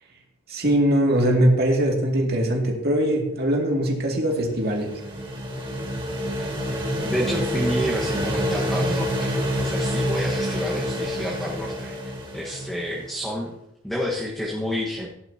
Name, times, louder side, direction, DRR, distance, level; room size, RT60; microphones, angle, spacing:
voice 1, 0.5-4.9, right 1 dB, 50° right, -1 dB, 2.4 m, -21 dB
sound 1, 4.3-13.1, equal, 25° right, 2.2 m, -27 dB
voice 2, 7.0-12.0 12.3-13.5 13.8-15.1, equal, ahead, -4 dB, 1.5 m, -29 dB
16.5 x 11.0 x 2.9 m, 0.85 s
head